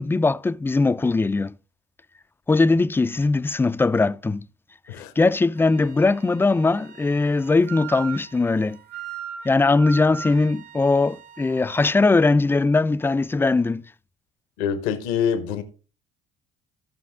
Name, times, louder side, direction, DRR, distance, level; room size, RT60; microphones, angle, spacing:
voice 1, 0.0-1.6 2.5-4.5 5.2-8.8 9.4-13.8, left 3 dB, 10° left, 0.4 m, -20 dB
Wind instrument woodwind instrument, 5.6-11.9, right 7 dB, 70° right, 1.0 m, -39 dB
voice 2, 14.6-15.6, left 7 dB, 80° left, 1.2 m, -25 dB
14.5 x 5.6 x 3.7 m
hypercardioid pair, 70°, 17 cm